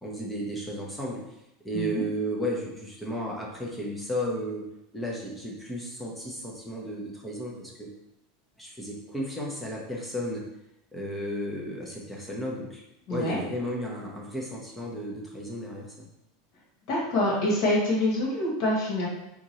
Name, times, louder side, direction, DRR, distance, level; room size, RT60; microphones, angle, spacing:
voice 1, 0.0-1.2 1.6-4.6 4.9-7.9 8.6-10.4 10.9-12.8 13.1-16.0, equal, 5° left, -3 dB, 0.7 m, -33 dB
voice 2, 13.1-13.4 16.9-19.1, left 1 dB, 50° left, -4 dB, 1.3 m, -26 dB
3.6 x 2.8 x 3.0 m, 0.86 s
supercardioid pair, 160°, 0 cm